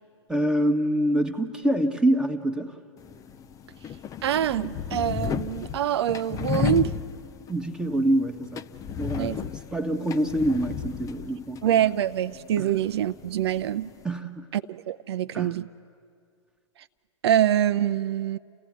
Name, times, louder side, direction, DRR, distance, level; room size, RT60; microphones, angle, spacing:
voice 1, 0.3-2.7 7.5-8.6 9.0-9.4 9.7-11.6 12.6-12.7 14.0-14.5 15.3-15.6, right 1 dB, 5° right, 1.3 m, -25 dB
sound 1, 3.0-14.1, left 8 dB, 20° left, 0.6 m, -34 dB
voice 2, 4.2-6.9 9.2-9.5 11.6-13.9 14.5-15.7 17.2-18.4, right 10 dB, 60° right, 0.6 m, -25 dB
29.5 x 15.0 x 9.6 m
figure-of-eight pair, 110°, 15 cm